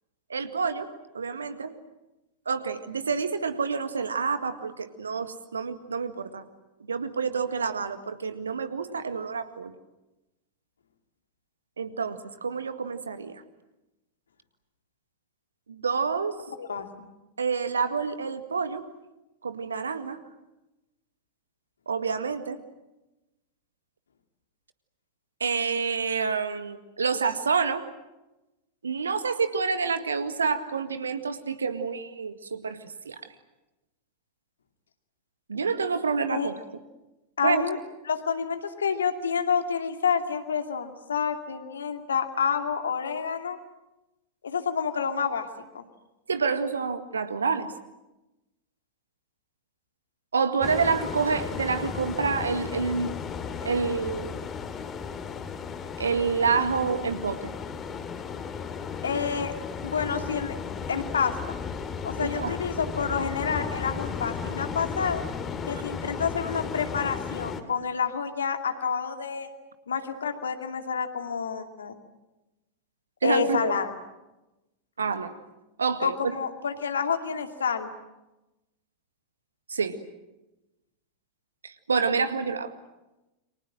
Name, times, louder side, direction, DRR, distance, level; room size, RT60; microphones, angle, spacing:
voice 1, 0.3-0.9 1.1-1.7 2.5-6.4 6.9-9.7 11.8-13.4 15.7-16.4 17.4-18.8 19.4-20.2 21.9-22.6 25.4-27.8 28.8-33.2 35.5-36.6 37.4-37.6 46.3-47.7 50.3-53.2 53.6-54.5 56.0-57.5 62.2-62.6 73.2-73.7 75.0-75.3 75.8-76.3 79.7-80.0 81.6-82.7, right 5 dB, 75° right, 10 dB, 1.9 m, -28 dB
voice 2, 37.4-37.8 38.1-43.6 44.4-45.5 45.7-45.9 59.0-59.5 59.8-60.6 60.9-61.6 62.0-65.2 65.6-69.5 69.9-71.9 73.2-73.9 76.0-77.9, left 6 dB, 70° left, 6 dB, 2.5 m, -28 dB
sound 1, 50.6-67.6, left 6 dB, 25° left, 2.8 m, -35 dB
29.5 x 24.5 x 7.7 m, 1.0 s
figure-of-eight pair, 90°, 0 cm